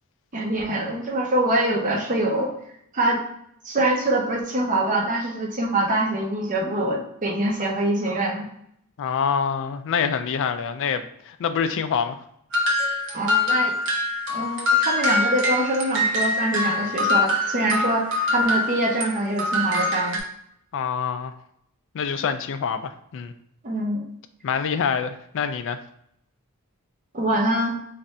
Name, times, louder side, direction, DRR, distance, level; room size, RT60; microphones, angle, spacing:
voice 1, 0.3-2.5 2.9-3.2 3.6-8.5 13.1-13.7 14.3-20.2 23.6-24.0 27.1-27.8, right 1 dB, 35° right, -1 dB, 0.8 m, -24 dB
voice 2, 9.0-12.2 20.7-21.3 21.9-23.3 24.4-25.8, left 6 dB, 60° left, 9 dB, 0.4 m, -26 dB
sound 1, 12.5-19.1 19.4-20.2, left 2 dB, 60° right, 1.0 m, -24 dB
3.3 x 2.6 x 4.1 m, 0.73 s
head